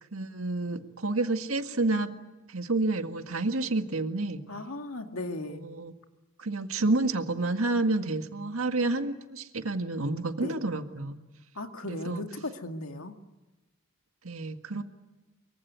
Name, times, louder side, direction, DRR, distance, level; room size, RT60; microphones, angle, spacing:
voice 1, 0.1-2.1 2.5-4.4 5.5-5.9 6.4-11.2 11.8-12.2 14.2-14.8, right 2 dB, 85° right, 7 dB, 1.9 m, -29 dB
voice 2, 4.5-5.7 10.4-10.6 11.5-13.1, left 2 dB, 85° left, 5 dB, 2.1 m, -37 dB
24.5 x 23.5 x 9.6 m, 1.1 s
head